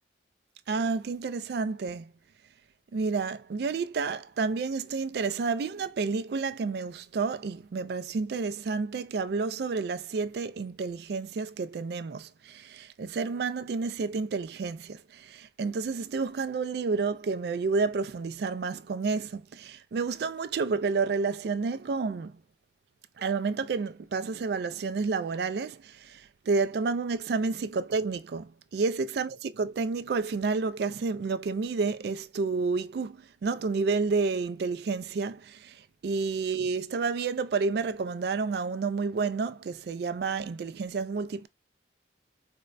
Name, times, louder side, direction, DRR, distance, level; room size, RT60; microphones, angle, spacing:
voice 1, 0.7-2.1 2.9-22.3 23.2-29.3 29.6-35.8 36.0-41.5, right 4 dB, 55° right, 0.3 m, -30 dB
4.3 x 2.1 x 2.4 m
head